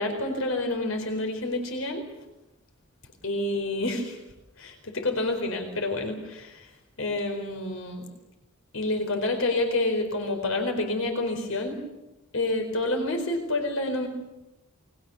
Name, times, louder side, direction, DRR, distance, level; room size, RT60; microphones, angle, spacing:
voice 1, 0.0-2.0 3.2-4.2 4.6-6.7 7.0-8.0 8.7-11.8 12.3-14.1, left 2 dB, 75° left, 4 dB, 4.5 m, -28 dB
29.0 x 22.0 x 7.2 m, 0.98 s
head